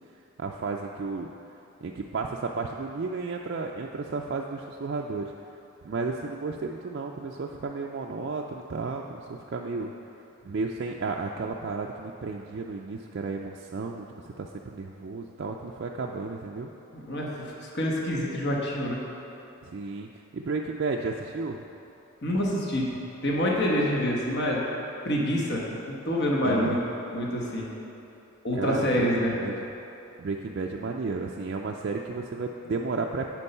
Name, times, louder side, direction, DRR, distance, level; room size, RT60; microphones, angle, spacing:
voice 1, 0.4-1.3 1.8-5.3 5.8-9.9 10.4-16.7 19.6-21.6 26.4-26.8 28.5-29.6 30.2-33.3, right 4 dB, 50° right, 0 dB, 0.3 m, -33 dB
voice 2, 16.9-17.3 17.7-19.0 22.2-22.9 23.2-24.6 25.0-26.8 27.1-27.6 28.4-29.3, equal, 50° left, -3 dB, 1.1 m, -26 dB
9.8 x 4.5 x 5.5 m, 2.9 s
head